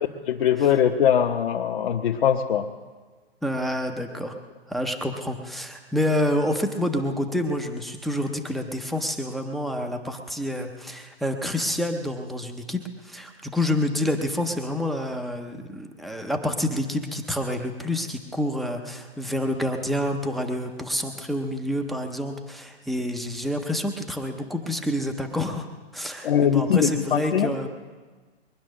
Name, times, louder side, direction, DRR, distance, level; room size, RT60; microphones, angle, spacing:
voice 1, 0.3-2.7 26.2-27.5, left 8 dB, 55° left, 0 dB, 1.2 m, -21 dB
voice 2, 3.4-4.4 4.7-25.7 25.9-27.7, left 1 dB, ahead, 4 dB, 0.5 m, -28 dB
22.0 x 10.0 x 6.3 m, 1.4 s
hypercardioid pair, 140°, 32 cm